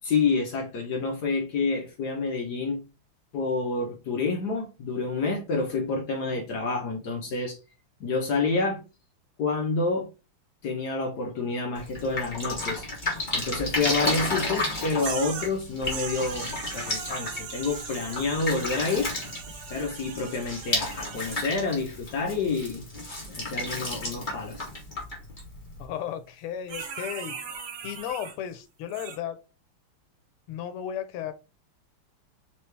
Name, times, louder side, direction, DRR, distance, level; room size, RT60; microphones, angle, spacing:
voice 1, 0.0-2.8 3.3-7.6 8.0-8.8 9.4-10.1 10.6-12.8 13.3-19.1 19.7-22.9 23.3-24.7, left 4 dB, 60° left, 1.2 m, -28 dB
Drip, 11.8-25.8, left 2 dB, 25° left, 1.3 m, -33 dB
sound 1, 15.0-15.5 15.8-21.4 26.7-28.4 28.9-29.2, right 6 dB, 65° right, 1.4 m, -39 dB
voice 2, 25.8-27.4 27.8-29.4 30.5-31.3, left 9 dB, 90° left, 1.6 m, -34 dB
4.6 x 3.0 x 3.2 m
omnidirectional pair, 2.4 m